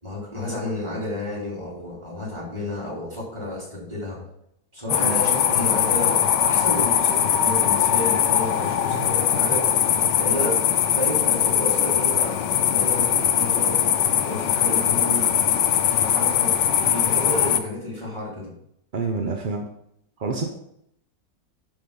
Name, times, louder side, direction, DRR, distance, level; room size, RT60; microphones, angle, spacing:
voice 1, 0.0-4.2 4.7-9.7 10.1-12.4 12.7-13.8 14.2-15.3 15.9-18.5, left 1 dB, 15° right, -5 dB, 3.6 m, -31 dB
sound 1, 4.9-17.6, left 9 dB, 80° left, 1.3 m, -21 dB
voice 2, 18.9-19.7 20.2-20.4, right 4 dB, 45° right, 2 dB, 0.6 m, -27 dB
10.5 x 4.2 x 5.4 m, 0.75 s
omnidirectional pair, 1.9 m